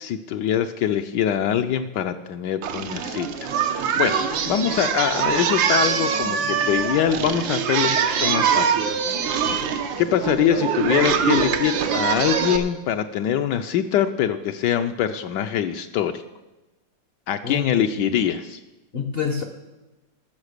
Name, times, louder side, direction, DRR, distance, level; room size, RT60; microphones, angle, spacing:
voice 1, 0.0-8.8 10.0-16.2 17.3-18.6, left 9 dB, 75° left, 7 dB, 1.2 m, -24 dB
Singing, 2.6-12.6, right 7 dB, 85° right, 1.6 m, -23 dB
voice 2, 9.4-9.7 17.4-18.1 18.9-19.5, left 6 dB, 50° left, 5 dB, 0.7 m, -29 dB
14.0 x 6.5 x 6.6 m, 1.1 s
omnidirectional pair, 2.0 m